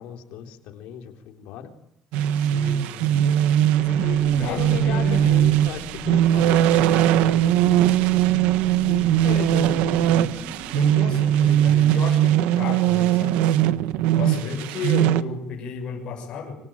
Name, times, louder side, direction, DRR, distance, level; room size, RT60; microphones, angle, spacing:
voice 1, 0.0-1.7 2.6-2.9 4.2-8.3 8.9-10.4 14.4-14.6, left 10 dB, 75° left, 5 dB, 3.8 m, -37 dB
sound 1, 2.1-15.2, right 12 dB, 85° right, 1.4 m, -20 dB
voice 2, 2.3-3.1 3.8-5.3 9.2-9.5 10.7-13.4 14.2-16.6, left 5 dB, 40° left, -1 dB, 7.1 m, -33 dB
sound 2, 3.8-12.0, left 1 dB, 35° right, 3.3 m, -37 dB
25.5 x 25.5 x 9.0 m, 0.73 s
cardioid pair, 175°, 2 cm